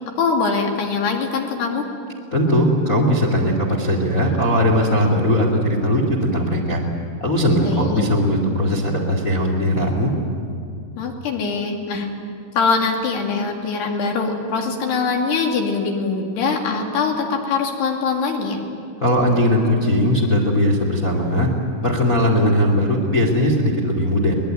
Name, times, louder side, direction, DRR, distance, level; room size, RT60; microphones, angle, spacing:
voice 1, 0.2-1.8 7.6-8.0 11.0-12.1 12.6-18.6, left 4 dB, 60° left, 1 dB, 4.1 m, -22 dB
voice 2, 2.3-6.8 7.2-10.1 19.0-21.5 21.8-24.3, equal, 30° left, -1 dB, 1.7 m, -19 dB
23.5 x 20.5 x 9.2 m, 2.4 s
omnidirectional pair, 5.9 m